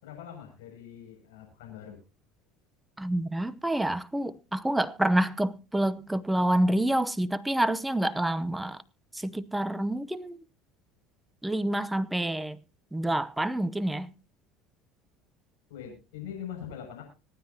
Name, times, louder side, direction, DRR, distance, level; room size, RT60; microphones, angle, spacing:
voice 1, 0.0-2.0 15.7-17.0, left 9 dB, 85° left, 6.7 m, -42 dB
voice 2, 3.0-8.8 9.2-10.4 11.4-12.6 12.9-14.1, right 1 dB, 5° right, 0.8 m, -27 dB
25.5 x 9.6 x 2.9 m
supercardioid pair, 90°, 0 cm